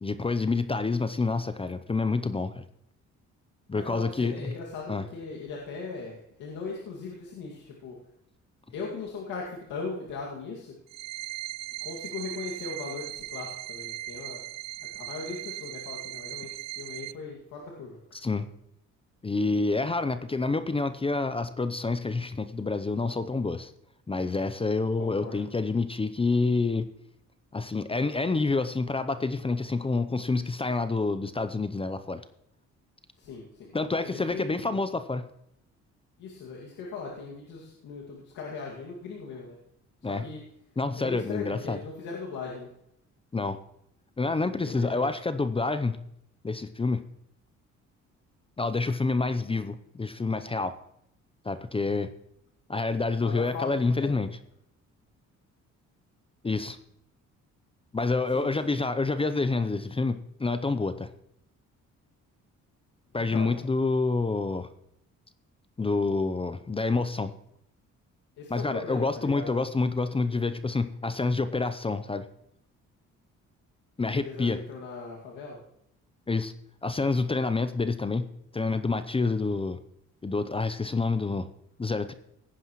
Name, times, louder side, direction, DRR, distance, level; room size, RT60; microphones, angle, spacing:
voice 1, 0.0-2.6 3.7-4.5 4.9-5.1 18.1-18.5 19.2-23.7 24.1-26.9 27.5-32.2 33.7-35.3 40.0-40.2 40.8-41.8 43.3-43.6 44.2-46.0 46.4-47.0 48.6-50.7 51.4-52.1 52.7-54.4 56.4-56.8 57.9-61.1 63.1-64.7 65.8-67.3 68.5-72.3 74.0-74.6 76.3-76.5 76.8-78.3 78.5-79.8 80.2-81.5 81.8-82.1, left 3 dB, 20° left, 12 dB, 0.7 m, -28 dB
voice 2, 3.7-8.0 8.7-10.7 11.8-14.4 14.9-18.0 25.0-25.4 33.2-33.7 34.0-34.8 36.2-39.6 40.0-40.4 40.9-42.7 44.6-45.1 53.2-54.3 58.3-58.7 63.1-63.6 68.4-69.6 74.1-75.6, left 4 dB, 90° left, -3 dB, 2.3 m, -39 dB
sound 1, 10.9-17.1, right 15 dB, 60° right, 0.4 m, -38 dB
17.5 x 9.7 x 3.1 m, 0.74 s
cardioid pair, 90°, 30 cm